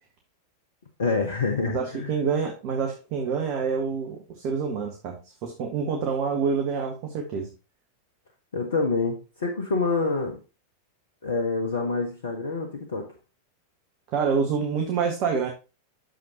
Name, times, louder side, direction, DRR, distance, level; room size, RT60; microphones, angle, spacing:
voice 1, 1.0-2.1 8.5-10.4 11.2-13.1, left 3 dB, 65° left, 1.3 m, -27 dB
voice 2, 1.7-7.5 14.1-15.5, right 6 dB, 45° right, 1.6 m, -27 dB
9.1 x 7.0 x 3.0 m
figure-of-eight pair, 90°, 0 cm